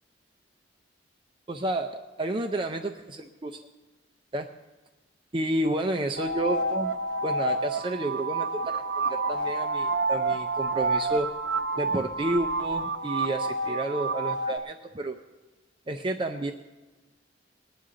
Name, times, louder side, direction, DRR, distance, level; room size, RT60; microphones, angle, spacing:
voice 1, 1.5-3.6 4.3-4.5 5.3-6.9 7.2-11.3 11.8-15.2 15.9-16.5, right 1 dB, 25° right, 5 dB, 0.5 m, -30 dB
sound 1, 6.2-14.6, right 2 dB, 80° right, 0.8 m, -29 dB
20.5 x 9.5 x 3.8 m, 1.2 s
head